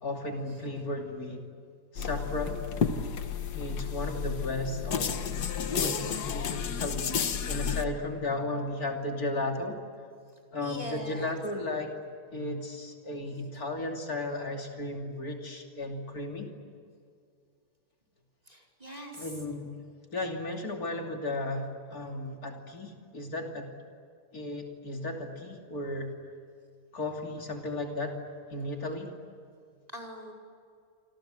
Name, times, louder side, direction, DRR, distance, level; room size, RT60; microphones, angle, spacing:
voice 1, 0.0-1.4 1.9-2.6 3.5-5.2 5.7-7.1 7.5-9.8 10.5-11.9 12.3-16.5 19.2-19.7 20.1-23.7 24.3-26.1 26.9-28.2 28.5-29.1, left 2 dB, 65° left, 2 dB, 3.4 m, -34 dB
sound 1, 2.0-7.8, left 7 dB, 80° left, 1.8 m, -32 dB
voice 2, 10.6-11.4 18.5-19.4 29.9-30.3, equal, 25° right, -1 dB, 4.9 m, -42 dB
28.0 x 26.5 x 7.8 m, 2.3 s
omnidirectional pair, 1.7 m